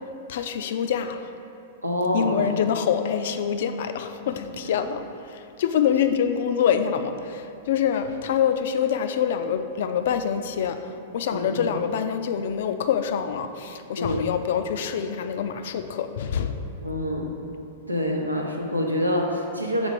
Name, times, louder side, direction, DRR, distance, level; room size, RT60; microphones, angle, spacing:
voice 1, 0.3-1.3 2.1-16.6, left 8 dB, 55° left, 8 dB, 0.3 m, -25 dB
voice 2, 1.8-2.6 11.3-11.7 14.0-14.3 16.8-17.3 17.9-19.9, left 1 dB, 90° right, 1 dB, 0.7 m, -26 dB
6.1 x 4.0 x 4.7 m, 2.6 s
figure-of-eight pair, 100°, 0 cm